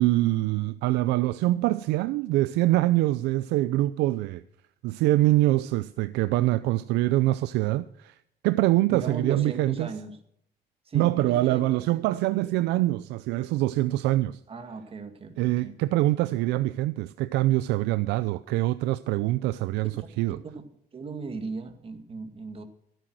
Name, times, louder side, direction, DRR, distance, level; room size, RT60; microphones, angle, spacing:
voice 1, 0.0-4.4 4.8-8.2 8.4-9.9 10.9-14.4 15.4-19.9 20.2-20.4, right 17 dB, 90° right, 0.5 m, -24 dB
voice 2, 8.9-10.2 10.9-11.6 11.9-12.1 14.5-15.7 20.0-20.1 20.9-22.6, right 4 dB, 35° right, 2.1 m, -37 dB
16.0 x 9.2 x 6.2 m
cardioid pair, 110°, 17 cm